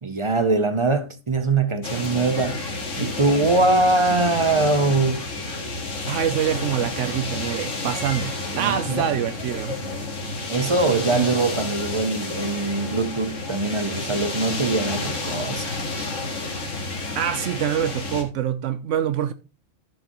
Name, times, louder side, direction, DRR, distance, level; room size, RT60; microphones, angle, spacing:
voice 1, 0.0-5.3 8.6-9.1 10.5-15.8, right 3 dB, 35° right, 0.5 m, -22 dB
sound 1, 1.8-18.2, left 2 dB, 80° left, 2.2 m, -30 dB
voice 2, 6.1-9.7 11.1-11.2 17.1-19.3, right 10 dB, 75° right, 0.9 m, -25 dB
12.5 x 7.3 x 3.0 m
omnidirectional pair, 1.3 m